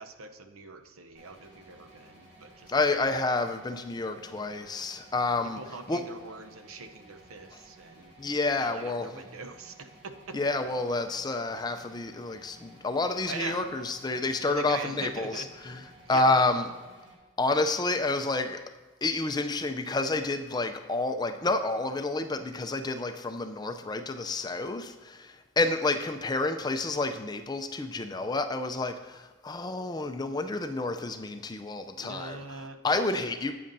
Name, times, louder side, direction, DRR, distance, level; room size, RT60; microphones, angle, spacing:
voice 1, 0.0-3.0 5.4-8.1 8.5-10.4 13.3-14.0 14.4-15.5 16.1-16.3 31.9-32.8, right 4 dB, 85° right, 7 dB, 0.7 m, -42 dB
sound 1, 1.1-17.1, right 1 dB, 60° right, 2.5 m, -55 dB
voice 2, 2.7-5.6 5.9-6.0 8.2-9.2 10.3-15.8 16.1-16.6 17.4-18.6 19.0-32.4 32.8-33.5, left 3 dB, 20° left, 7 dB, 0.4 m, -29 dB
14.0 x 8.6 x 2.6 m, 1.2 s
head